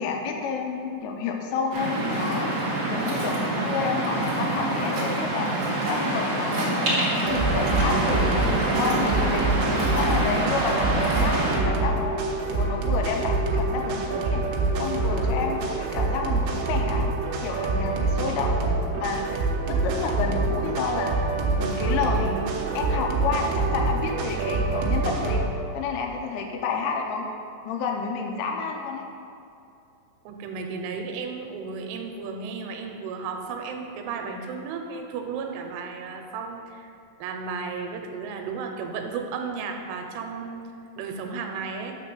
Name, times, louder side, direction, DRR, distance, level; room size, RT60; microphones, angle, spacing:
voice 1, 0.0-2.5 2.9-5.5 5.9-6.7 7.2-9.5 9.9-11.4 11.6-12.2 12.5-14.4 14.8-17.1 17.4-18.5 18.9-19.4 19.7-21.1 21.6-25.4 25.7-27.3 27.7-29.1, left 5 dB, 85° left, 2 dB, 3.3 m, -30 dB
Waves surf, 1.7-11.6, right 1 dB, 45° right, 1.3 m, -26 dB
sound 1, 7.2-25.4, right 3 dB, 75° right, 2.8 m, -26 dB
voice 2, 30.3-36.9 37.2-40.6 41.0-42.0, right 5 dB, 90° right, 3 dB, 3.2 m, -34 dB
9.7 x 3.9 x 6.7 m, 2.6 s
omnidirectional pair, 5.6 m